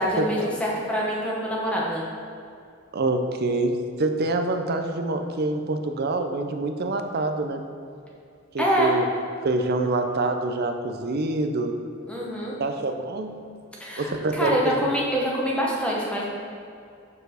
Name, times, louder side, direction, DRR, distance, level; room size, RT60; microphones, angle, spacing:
voice 1, 0.0-2.0 8.6-8.9 12.1-12.5 13.8-16.2, equal, 5° left, -5 dB, 1.0 m, -25 dB
voice 2, 2.9-7.6 8.5-9.1 9.4-11.7 12.6-13.3 14.0-14.9, right 2 dB, 50° right, 6 dB, 0.5 m, -26 dB
6.9 x 4.6 x 4.9 m, 2.5 s
head